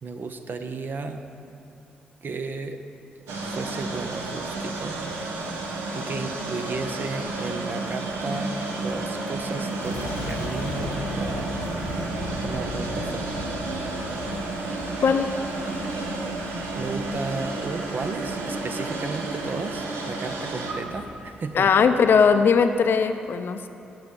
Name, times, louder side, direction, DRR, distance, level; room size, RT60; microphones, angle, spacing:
voice 1, 0.0-1.3 2.2-2.8 3.2-5.0 5.6-11.6 12.4-13.2 16.7-21.7, right 4 dB, 50° right, 7 dB, 0.7 m, -34 dB
sound 1, 3.3-22.4, right 2 dB, 75° right, 1.0 m, -31 dB
Boom, 9.7-19.0 19.6-20.0, left 2 dB, 85° left, 1.1 m, -38 dB
voice 2, 15.0-15.4 21.5-23.7, left 6 dB, 55° left, 9 dB, 0.5 m, -19 dB
8.9 x 5.8 x 6.9 m, 2.9 s
hypercardioid pair, 40°, 4 cm